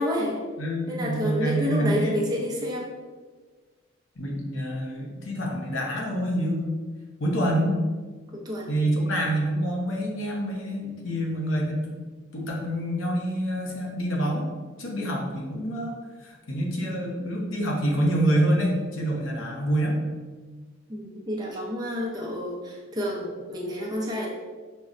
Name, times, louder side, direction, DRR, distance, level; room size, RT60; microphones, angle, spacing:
voice 1, 0.0-0.4 0.9-2.9 8.3-8.7 20.9-24.3, equal, 20° right, -3 dB, 0.6 m, -29 dB
voice 2, 0.6-2.1 4.2-6.8 7.2-7.8 8.7-12.0 12.3-14.5 14.8-20.0, right 1 dB, 80° left, -1 dB, 0.7 m, -27 dB
5.2 x 2.1 x 2.4 m, 1.4 s
head